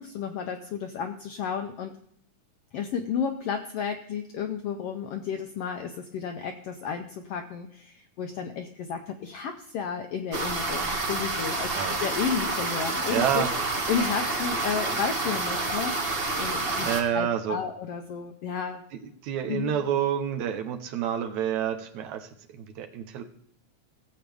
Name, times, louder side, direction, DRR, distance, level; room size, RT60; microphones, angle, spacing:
voice 1, 0.0-2.0 2.7-13.5 13.9-16.1 16.4-16.9 17.1-18.8 19.5-19.7, left 7 dB, 80° left, 6 dB, 1.4 m, -32 dB
sound 1, 10.3-17.0, right 2 dB, 45° right, 0.7 m, -29 dB
voice 2, 13.1-13.5 16.8-17.6 19.0-23.2, right 9 dB, 75° right, 5 dB, 2.2 m, -29 dB
16.5 x 7.7 x 3.5 m, 0.69 s
omnidirectional pair, 3.5 m